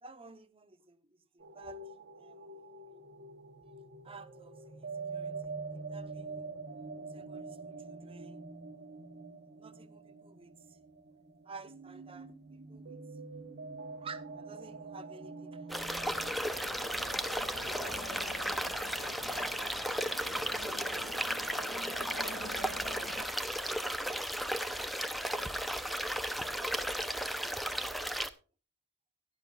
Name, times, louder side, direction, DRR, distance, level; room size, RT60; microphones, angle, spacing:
voice 1, 0.0-1.9 2.2-2.6 4.0-6.5 7.1-8.5 9.6-10.8 11.4-13.0 14.0-16.3 17.3-20.2 22.0-24.9 26.2-26.9, right 4 dB, 25° right, 0.9 m, -53 dB
sound 1, 1.4-16.3, right 4 dB, 50° right, 1.1 m, -45 dB
sound 2, 15.7-28.3, equal, ahead, 0.6 m, -35 dB
sound 3, 15.8-23.3, left 1 dB, 75° left, 4.2 m, -46 dB
16.5 x 11.0 x 2.4 m
head